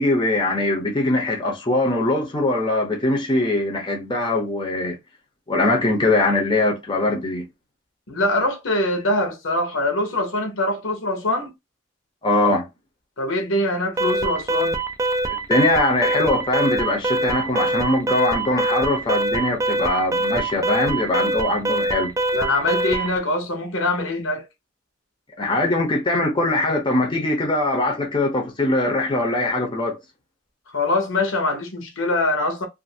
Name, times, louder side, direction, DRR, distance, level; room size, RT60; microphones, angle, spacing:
voice 1, 0.0-5.0 5.5-7.5 12.2-12.7 15.2-22.1 25.4-30.0, left 2 dB, 25° left, 0.7 m, -21 dB
voice 2, 8.1-11.5 13.2-14.8 22.3-24.5 30.7-32.7, left 2 dB, 80° left, 0.9 m, -23 dB
Alarm, 14.0-23.2, right 2 dB, 15° right, 0.3 m, -24 dB
2.5 x 2.5 x 2.7 m
head